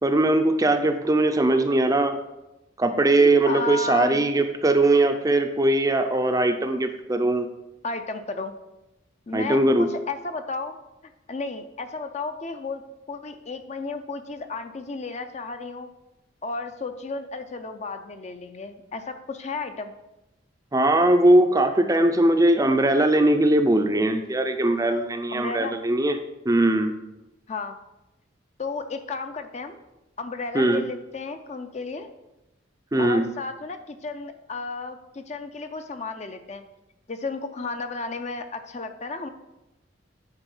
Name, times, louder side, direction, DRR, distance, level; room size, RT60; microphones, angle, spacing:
voice 1, 0.0-2.2 2.8-7.5 9.3-9.9 20.7-26.2 26.5-26.9 30.5-30.8 32.9-33.3, right 1 dB, 15° right, 7 dB, 0.5 m, -20 dB
voice 2, 3.5-4.2 7.8-8.5 9.3-10.8 11.0-15.9 16.4-19.9 25.3-25.8 27.5-27.8 28.6-29.8 30.2-32.1 33.0-36.6 37.1-39.3, left 3 dB, 35° left, 8 dB, 0.5 m, -33 dB
9.0 x 4.5 x 5.5 m, 0.96 s
head